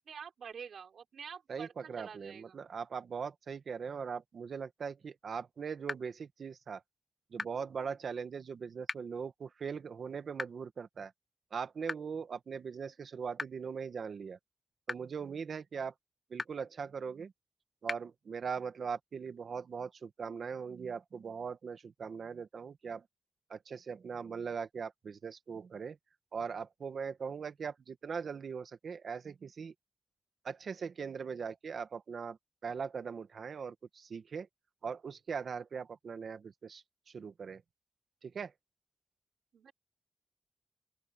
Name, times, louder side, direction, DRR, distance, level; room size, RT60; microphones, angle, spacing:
voice 1, 0.0-2.6 39.5-39.7, right 7 dB, 90° right, 4.8 m, -47 dB
voice 2, 1.5-6.8 7.3-11.1 11.5-14.4 14.9-15.9 16.3-17.3 17.8-23.0 23.5-26.0 26.3-29.7 30.4-34.5 34.8-37.6 38.2-38.5, right 6 dB, 70° right, 1.6 m, -40 dB
sound 1, 5.9-6.0 7.4-7.5 8.9-9.0 10.4-10.5 11.9-12.0 13.4-13.5 14.9-15.0 16.4-16.5 17.9-18.0, left 4 dB, 40° left, 0.3 m, -35 dB
open air
wide cardioid pair, 120°, 0 cm